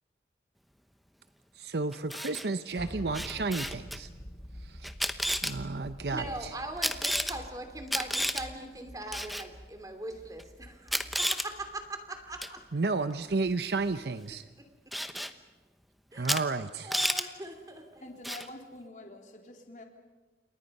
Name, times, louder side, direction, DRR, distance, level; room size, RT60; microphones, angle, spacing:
voice 1, 1.5-4.1 4.6-4.9 5.4-6.5 12.7-14.5 16.1-17.0, right 3 dB, 65° right, 11 dB, 0.7 m, -32 dB
Camera, 1.9-2.4 3.1-4.0 4.8-5.5 6.8-7.3 7.9-8.4 9.1-9.5 10.4-10.5 10.9-11.5 12.4-12.6 14.9-15.3 16.2-16.4 16.7-17.2 18.2-18.5, equal, ahead, 0.9 m, -31 dB
sound 1, 2.7-14.5, equal, 25° left, 2.6 m, -48 dB
voice 2, 6.1-12.6 15.0-15.1 16.1-16.3 16.8-18.1, right 2 dB, 20° right, 6 dB, 2.7 m, -41 dB
voice 3, 18.0-19.8, left 1 dB, 45° left, 2 dB, 3.3 m, -46 dB
30.0 x 28.5 x 5.4 m, 1.2 s
head